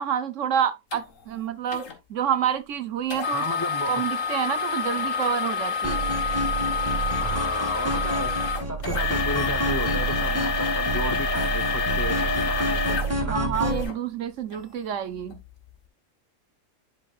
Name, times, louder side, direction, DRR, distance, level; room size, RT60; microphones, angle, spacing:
voice 1, 0.0-1.8 2.1-3.4 3.9-6.0 13.3-15.4, right 9 dB, 65° right, 1.0 m, -28 dB
sound 1, 0.9-1.0 1.7-1.9 3.1-13.9 14.5-14.6 15.2-15.4, left 5 dB, 65° left, 1.7 m, -28 dB
voice 2, 3.3-4.0 7.2-13.4, right 1 dB, 15° left, 0.6 m, -34 dB
sound 2, 5.8-13.8, right 2 dB, 10° right, 1.6 m, -29 dB
10.5 x 5.2 x 2.4 m
omnidirectional pair, 1.5 m